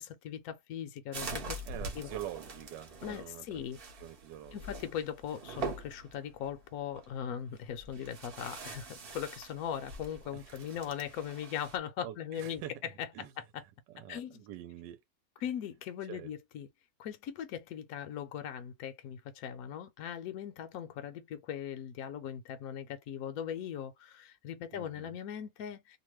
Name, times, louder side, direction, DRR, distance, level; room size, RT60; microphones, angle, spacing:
voice 1, 0.0-1.6 2.0-2.1 3.0-3.8 4.5-12.6 13.4-13.6 14.1-14.4 15.4-16.7 17.0-26.0, left 9 dB, 65° left, 0.9 m, -39 dB
sound 1, 1.1-11.8, right 3 dB, 50° right, 0.7 m, -44 dB
voice 2, 1.7-4.9 10.3-10.7 12.0-12.7 13.1-13.3 13.9-15.0 16.1-16.3 24.7-25.1, right 12 dB, 80° right, 1.2 m, -46 dB
2.9 x 2.2 x 3.0 m
omnidirectional pair, 1.9 m